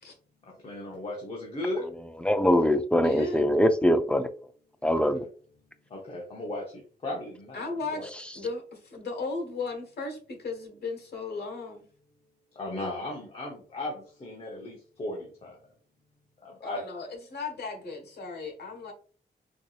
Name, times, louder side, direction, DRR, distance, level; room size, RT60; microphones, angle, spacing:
voice 1, 0.5-1.9 4.9-5.0 5.9-7.6 7.9-8.1 12.5-15.6 16.4-16.8, left 1 dB, 35° left, 0.8 m, -36 dB
voice 2, 2.2-4.3 4.8-5.2, equal, 5° left, 0.3 m, -22 dB
voice 3, 3.0-3.5 7.5-11.8 16.6-18.9, left 3 dB, 70° left, 1.3 m, -36 dB
4.6 x 2.7 x 2.4 m
wide cardioid pair, 140°, 18 cm